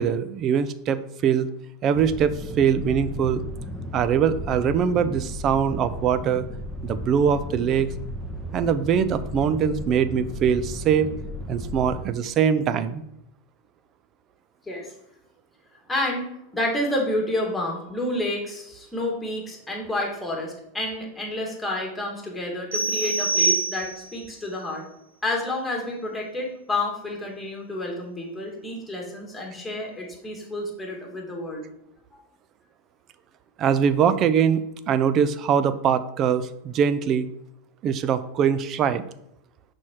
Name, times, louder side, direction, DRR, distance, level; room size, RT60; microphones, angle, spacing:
voice 1, 0.0-1.5 1.8-3.4 3.9-6.5 6.8-7.9 8.5-11.1 11.5-13.0 33.6-37.3 37.8-39.0, right 7 dB, 40° right, 14 dB, 0.5 m, -22 dB
sound 1, 1.9-12.0, equal, 15° right, 1.3 m, -35 dB
voice 2, 15.9-16.2 16.5-24.8 25.2-31.7, left 1 dB, 10° left, -1 dB, 2.1 m, -29 dB
sound 2, 22.7-24.2, right 3 dB, 85° right, 2.3 m, -25 dB
6.2 x 4.4 x 4.5 m, 0.81 s
hypercardioid pair, 115°, 0 cm